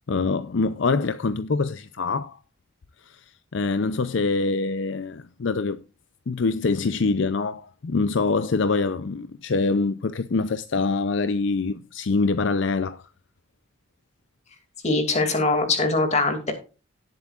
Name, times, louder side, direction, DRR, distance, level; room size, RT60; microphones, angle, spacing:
voice 1, 0.1-2.4 3.1-3.2 3.5-5.8 6.3-13.0, left 4 dB, 60° left, 0.5 m, -24 dB
voice 2, 14.8-16.5, left 3 dB, 30° left, 2.4 m, -22 dB
17.5 x 7.7 x 2.4 m
head